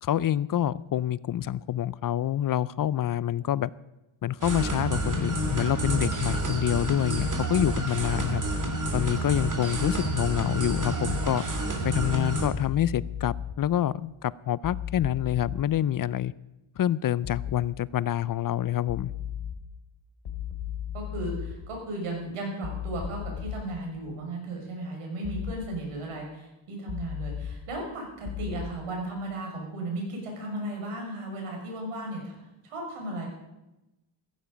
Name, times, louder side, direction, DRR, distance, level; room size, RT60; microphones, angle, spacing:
voice 1, 0.0-3.7 4.2-8.4 8.9-11.4 11.8-16.3 16.8-19.1, left 11 dB, 45° left, 20 dB, 0.5 m, -27 dB
sound 1, 4.4-12.5, right 1 dB, 35° right, 2.9 m, -29 dB
sound 2, 12.5-13.5 14.6-15.6 17.2-17.6 18.9-19.5 20.3-21.5 22.6-23.6 25.2-25.6 26.9-27.5 28.3-28.6, left 10 dB, 70° left, 2.9 m, -35 dB
voice 2, 20.9-32.4 32.6-33.3, right 2 dB, 90° right, 1 dB, 5.9 m, -35 dB
15.5 x 15.0 x 5.1 m, 0.96 s
cardioid pair, 115°, 50 cm